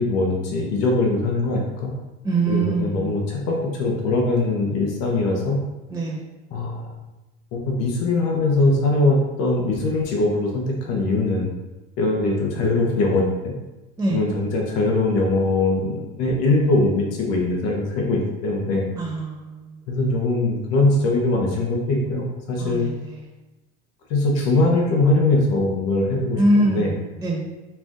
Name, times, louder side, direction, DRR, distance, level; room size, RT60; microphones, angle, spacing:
voice 1, 0.0-1.9 2.5-5.6 6.5-6.9 7.5-11.5 12.0-13.5 14.1-18.9 19.9-22.9 24.1-26.9, left 2 dB, 60° left, -1 dB, 1.1 m, -21 dB
voice 2, 2.2-3.1 5.9-6.2 14.0-14.2 19.0-19.6 22.6-22.9 26.3-26.9 27.2-27.4, right 2 dB, 10° right, -4 dB, 1.1 m, -22 dB
4.7 x 2.5 x 3.6 m, 1.1 s
hypercardioid pair, 95°, 30 cm